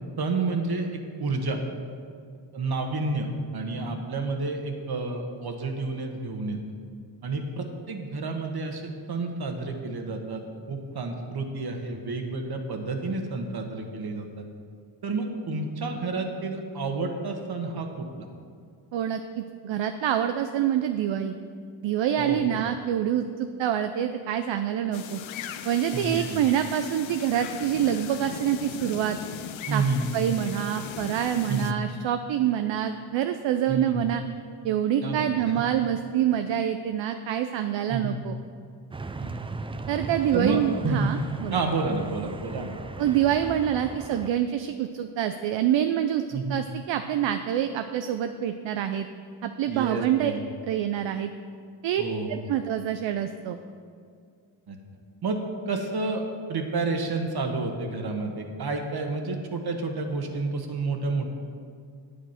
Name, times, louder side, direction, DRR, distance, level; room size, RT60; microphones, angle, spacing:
voice 1, 0.2-1.6 2.5-6.6 7.2-10.4 10.7-14.4 15.0-18.3 22.2-22.6 25.9-26.4 29.7-30.2 31.5-31.7 33.6-34.1 35.0-35.3 37.9-38.1 39.2-39.5 40.3-41.1 41.5-42.7 43.1-43.2 46.3-46.6 49.7-50.4 52.0-52.7 54.7-54.8 55.2-55.4 55.7-56.2 56.5-61.3, right 3 dB, 55° right, 4 dB, 1.6 m, -30 dB
voice 2, 18.9-21.4 21.8-25.2 25.6-29.2 29.7-29.8 30.1-34.2 34.6-38.4 39.9-41.6 43.0-49.1 49.4-50.3 50.6-51.3 51.8-52.0 52.3-53.6, right 10 dB, 70° right, 8 dB, 0.6 m, -26 dB
sound 1, 24.9-31.7, left 9 dB, 80° left, 0.7 m, -38 dB
sound 2, 38.9-44.3, right 3 dB, 10° right, 0.4 m, -38 dB
8.8 x 8.4 x 5.8 m, 2.2 s
cardioid pair, 70°, 46 cm